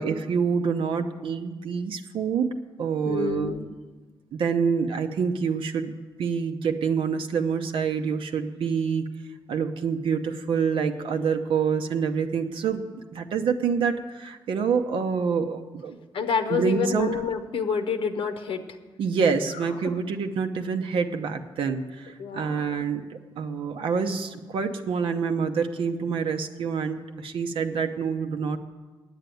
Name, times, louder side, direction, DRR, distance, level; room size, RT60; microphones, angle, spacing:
voice 1, 0.0-2.5 2.8-3.5 4.3-9.1 9.5-16.0 16.5-17.2 19.0-28.6, right 6 dB, 75° right, 5 dB, 0.7 m, -27 dB
voice 2, 3.0-3.7 16.1-18.6 22.2-22.6, left 6 dB, 85° left, 6 dB, 0.9 m, -28 dB
9.1 x 8.1 x 9.2 m, 1.3 s
cardioid pair, 120°, 9 cm